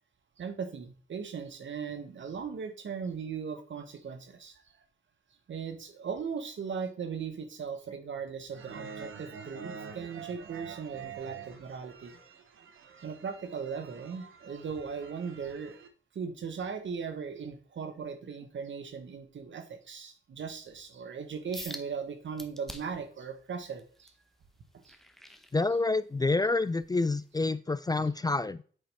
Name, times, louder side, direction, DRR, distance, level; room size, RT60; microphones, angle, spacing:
voice 1, 0.4-4.6 5.5-12.2 13.0-15.8 16.1-24.1 24.8-25.0, right 6 dB, 70° right, 8 dB, 1.2 m, -38 dB
sound 1, 8.5-15.9, right 7 dB, 85° right, 0.9 m, -46 dB
sound 2, 21.5-21.9 22.4-23.1 23.6-26.1 26.6-26.8 27.4-27.5, equal, ahead, 1.0 m, -46 dB
voice 2, 25.5-28.6, left 3 dB, 20° left, 15 dB, 0.3 m, -28 dB
7.7 x 5.1 x 3.4 m, 0.41 s
cardioid pair, 65°, 20 cm